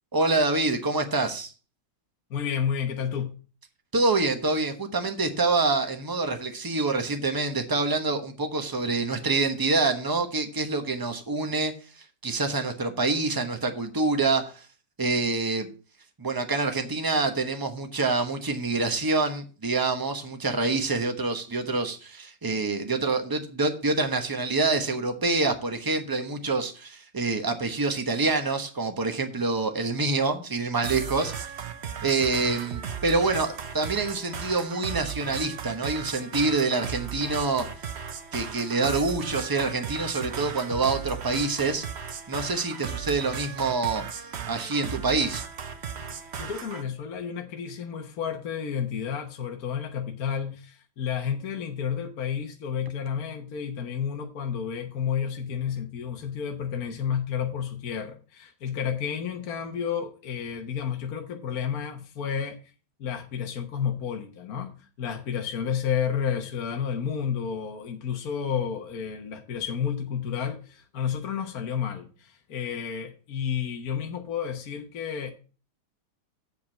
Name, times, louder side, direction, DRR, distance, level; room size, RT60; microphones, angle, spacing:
voice 1, 0.1-1.5 3.9-14.7 15.0-15.7 16.2-31.5 32.0-37.6 38.3-41.8 42.3-45.4, right 3 dB, 25° right, 0.5 m, -26 dB
voice 2, 2.3-3.3 46.4-62.7 63.0-75.3, left 7 dB, 50° left, 1.3 m, -31 dB
sound 1, 30.8-46.8, right 7 dB, 80° right, 0.6 m, -36 dB
7.9 x 5.3 x 7.4 m
omnidirectional pair, 2.3 m